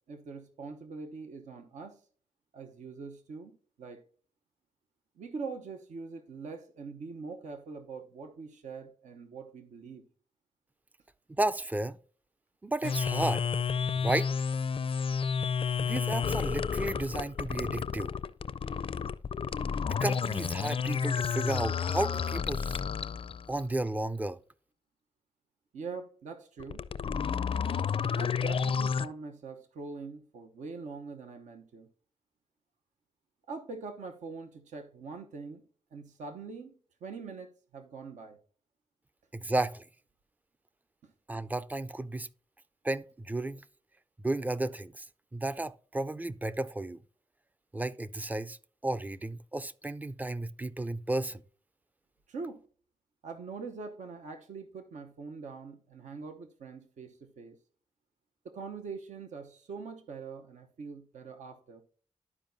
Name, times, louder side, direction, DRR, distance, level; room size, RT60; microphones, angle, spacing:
voice 1, 0.1-2.0 2.5-4.0 5.2-10.0 25.7-26.9 28.1-31.9 33.5-35.6 35.9-36.8 37.0-38.4 41.0-41.1 52.3-52.6 53.2-57.6 58.4-61.8, right 4 dB, 80° right, 0.9 m, -43 dB
voice 2, 11.4-12.0 12.6-13.4 13.9-14.3 15.8-18.1 19.9-22.8 23.5-24.4 39.3-39.8 41.3-42.3 42.8-43.6 44.2-45.1 45.3-47.0 47.7-48.6 48.8-51.4, right 2 dB, 15° right, 0.4 m, -33 dB
sound 1, 12.8-23.6 26.6-29.1, left 6 dB, 50° left, 0.4 m, -31 dB
12.0 x 4.8 x 2.6 m
cardioid pair, 60°, 12 cm